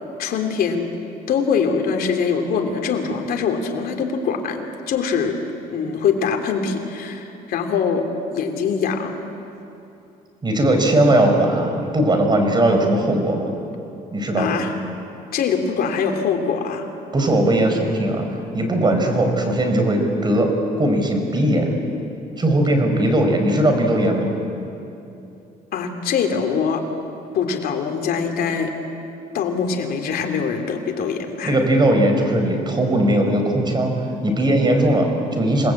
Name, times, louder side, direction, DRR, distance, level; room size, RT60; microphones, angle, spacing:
voice 1, 0.2-0.9 1.3-5.4 5.7-8.1 8.3-9.1 14.4-14.7 15.3-16.8 25.7-26.8 27.3-28.7 29.3-31.5, left 6 dB, 65° left, 3 dB, 3.2 m, -23 dB
voice 2, 10.4-13.5 14.1-14.6 17.1-18.3 18.5-21.7 22.4-24.3 31.4-35.7, right 1 dB, 25° right, 4 dB, 5.2 m, -19 dB
28.5 x 19.5 x 8.7 m, 2.8 s
cardioid pair, 110°, 17 cm